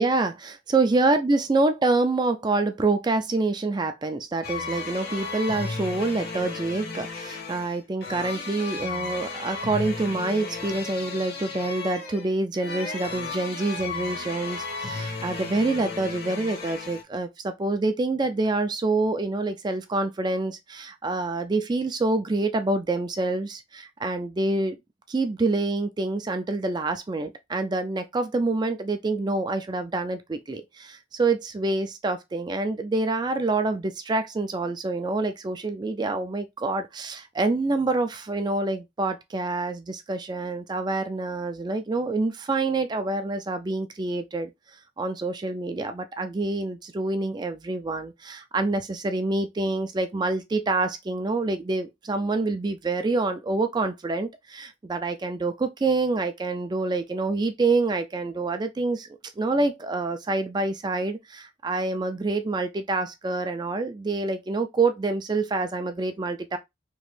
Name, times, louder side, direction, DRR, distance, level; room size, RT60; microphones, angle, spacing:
voice 1, 0.0-24.8 25.1-44.5 45.0-59.1 59.4-66.6, right 3 dB, 20° right, 0.3 m, -26 dB
sound 1, 4.4-17.0, left 4 dB, 55° left, 1.0 m, -34 dB
3.0 x 2.5 x 3.1 m
head